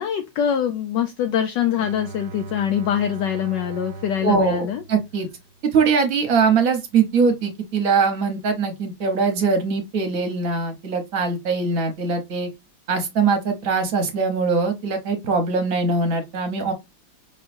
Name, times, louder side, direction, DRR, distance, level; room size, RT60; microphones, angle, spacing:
voice 1, 0.0-4.8, left 9 dB, 75° left, 1.1 m, -24 dB
Bowed string instrument, 1.7-5.7, right 3 dB, 80° right, 1.3 m, -38 dB
voice 2, 4.2-5.3 5.7-12.5 12.9-16.7, right 4 dB, 50° right, 1.2 m, -22 dB
5.3 x 3.1 x 2.5 m
omnidirectional pair, 2.1 m